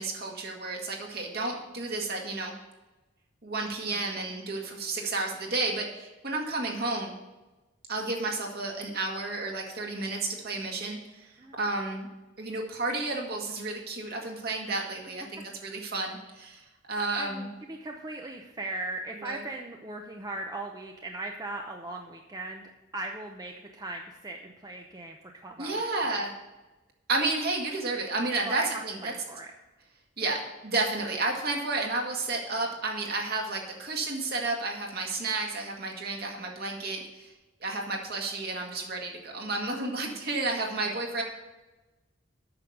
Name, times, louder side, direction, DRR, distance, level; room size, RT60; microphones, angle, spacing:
voice 1, 0.0-2.5 3.4-7.1 7.9-11.3 11.6-12.1 12.4-17.5 19.2-19.4 25.6-26.3 27.1-29.1 30.2-37.3 37.6-41.2, right 3 dB, 55° right, 0 dB, 2.0 m, -31 dB
voice 2, 17.2-26.3 28.4-29.5, right 2 dB, 20° right, 2 dB, 0.7 m, -39 dB
8.8 x 6.4 x 7.0 m, 1.1 s
head